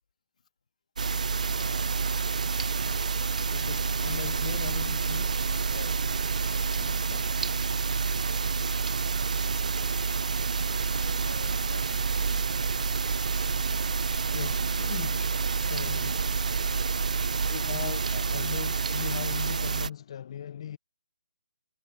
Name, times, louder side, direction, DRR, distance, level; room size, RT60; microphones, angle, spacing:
sound 1, 1.0-19.9, right 5 dB, 80° right, 0.4 m, -28 dB
voice 1, 1.5-1.9 5.6-6.1 8.1-8.2 11.0-13.2, left 6 dB, 70° left, 1.6 m, -50 dB
voice 2, 3.5-5.4 6.8-7.3 14.3-15.2 15.6-16.2 17.5-20.8, left 9 dB, 45° left, 0.4 m, -39 dB
hypercardioid pair, 155°, 4 cm